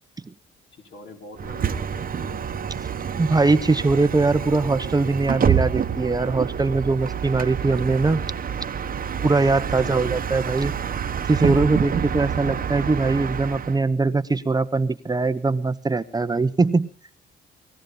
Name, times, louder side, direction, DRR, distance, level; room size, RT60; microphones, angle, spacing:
voice 1, 0.7-2.4 9.6-10.6, left 3 dB, 65° left, 2 dB, 5.3 m, -43 dB
Bus, 1.4-13.8, right 7 dB, 45° right, 1.2 m, -27 dB
voice 2, 3.2-8.2 9.2-16.9, right 3 dB, 20° right, 11 dB, 0.9 m, -21 dB
21.0 x 15.5 x 3.9 m, 0.37 s
cardioid pair, 90°, 20 cm